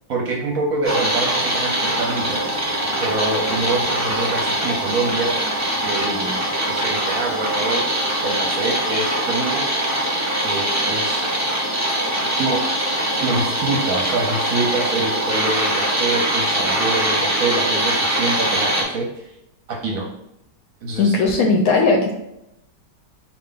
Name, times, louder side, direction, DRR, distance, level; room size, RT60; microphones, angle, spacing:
voice 1, 0.1-2.4 3.0-5.5 5.8-9.7 10.4-11.5 12.2-12.7 13.2-19.3 19.7-20.1 20.8-21.1, right 3 dB, 65° right, 0 dB, 1.0 m, -25 dB
sound 1, 0.8-18.8, right 1 dB, 20° right, 0.4 m, -22 dB
voice 2, 21.0-22.2, left 3 dB, 70° left, 1 dB, 0.9 m, -17 dB
4.4 x 2.5 x 3.7 m, 0.84 s
omnidirectional pair, 1.9 m